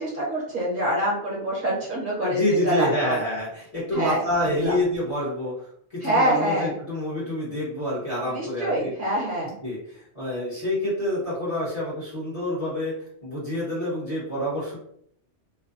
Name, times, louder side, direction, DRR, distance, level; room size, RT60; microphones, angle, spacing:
voice 1, 0.0-3.2 3.9-4.7 6.0-6.7 8.3-9.6, right 1 dB, 50° right, -5 dB, 1.0 m, -25 dB
voice 2, 2.2-5.5 5.9-8.9 9.6-12.9 13.2-14.8, left 1 dB, 35° left, -8 dB, 0.9 m, -27 dB
2.6 x 2.1 x 2.5 m, 0.67 s
omnidirectional pair, 1.2 m